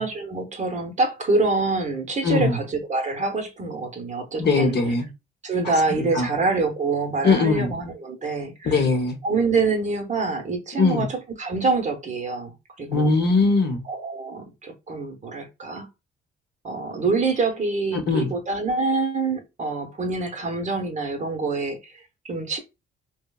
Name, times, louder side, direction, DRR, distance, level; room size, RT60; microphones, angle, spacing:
voice 1, 0.0-4.8 5.4-8.8 9.2-13.1 13.9-15.9 16.6-22.6, right 3 dB, 35° right, 0.7 m, -26 dB
voice 2, 2.2-2.6 4.4-5.1 6.0-6.3 7.2-7.7 8.6-9.2 10.8-11.1 12.9-13.8 17.9-18.3, left 4 dB, 60° left, 0.8 m, -21 dB
3.0 x 2.0 x 2.2 m
cardioid pair, 90°, 20 cm